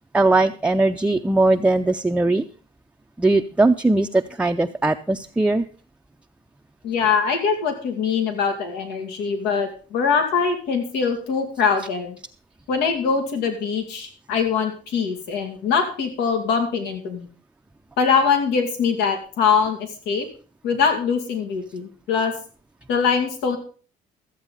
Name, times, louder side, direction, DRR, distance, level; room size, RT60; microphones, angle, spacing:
voice 1, 0.1-2.4 3.2-5.6, right 2 dB, 5° right, 5 dB, 0.5 m, -19 dB
voice 2, 6.8-12.2 12.7-17.3 18.0-20.3 20.6-22.3 22.9-23.6, left 6 dB, 90° left, 6 dB, 2.2 m, -22 dB
14.0 x 8.1 x 5.3 m, 0.39 s
cardioid pair, 110°, 17 cm